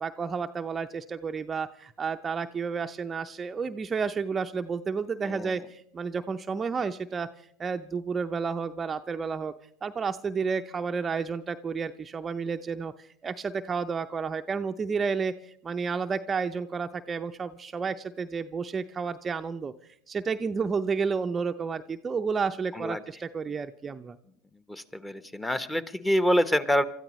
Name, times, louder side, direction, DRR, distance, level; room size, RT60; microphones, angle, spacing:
voice 1, 0.0-7.3 7.6-9.5 9.8-19.7 20.1-24.2, right 5 dB, 25° right, 7 dB, 0.6 m, -31 dB
voice 2, 5.2-5.6 22.7-23.0 24.7-26.8, equal, 10° left, 13 dB, 1.1 m, -26 dB
29.5 x 13.5 x 3.1 m, 0.67 s
hypercardioid pair, 85°, 0 cm